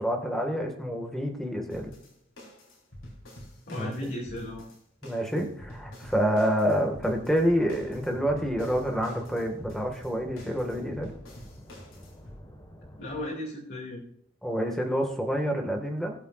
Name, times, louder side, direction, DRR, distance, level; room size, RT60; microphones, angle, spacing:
voice 1, 0.0-1.9 3.7-3.9 5.0-11.1 14.4-16.1, equal, ahead, 2 dB, 1.9 m, -28 dB
sound 1, 1.7-12.4, equal, 90° left, 4.5 m, -48 dB
voice 2, 3.7-4.7 13.0-14.0, left 1 dB, 55° left, -4 dB, 2.6 m, -35 dB
sound 2, 7.3-13.2, equal, 20° left, 1.6 m, -49 dB
21.5 x 7.2 x 2.5 m, 0.71 s
head